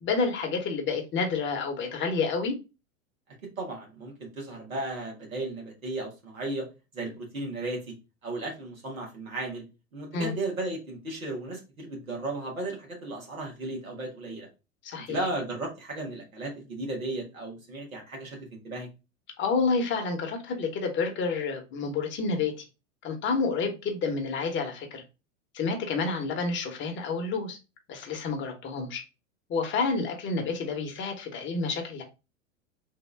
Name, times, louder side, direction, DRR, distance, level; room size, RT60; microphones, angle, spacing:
voice 1, 0.0-2.5 10.1-10.3 14.8-15.2 19.4-22.6 23.0-25.0 25.5-27.6 27.9-29.0 29.5-32.0, left 4 dB, 30° left, 1.0 m, -29 dB
voice 2, 3.6-6.7 6.9-7.9 8.2-9.6 9.9-14.5 15.1-18.9, right 2 dB, 90° right, 1.6 m, -35 dB
3.6 x 2.6 x 3.3 m
hypercardioid pair, 95°, 40 cm